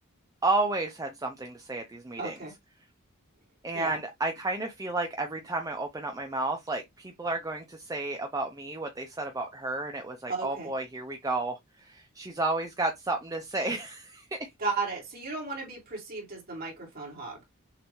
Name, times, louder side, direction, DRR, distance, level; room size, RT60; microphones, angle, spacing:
voice 1, 0.4-2.4 3.6-14.4, right 2 dB, 15° right, 0.5 m, -32 dB
voice 2, 2.2-2.5 3.7-4.0 10.3-10.7 14.6-17.4, right 3 dB, 45° right, 2.5 m, -35 dB
6.6 x 2.6 x 3.0 m
head